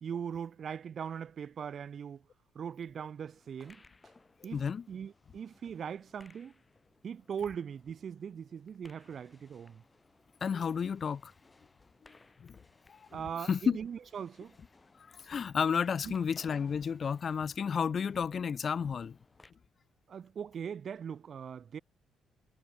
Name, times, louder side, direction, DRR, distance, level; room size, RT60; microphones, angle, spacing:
voice 1, 0.0-2.2 2.5-3.8 4.4-6.5 7.0-9.8 13.1-14.5 16.0-16.2 20.1-21.8, right 7 dB, 55° right, 0.7 m, -40 dB
sound 1, 3.3-19.5, left 3 dB, 25° left, 4.6 m, -63 dB
voice 2, 4.4-4.9 10.4-11.3 12.0-12.6 12.9-13.8 15.0-19.2, left 6 dB, 45° left, 0.3 m, -32 dB
cardioid pair, 90°, 0 cm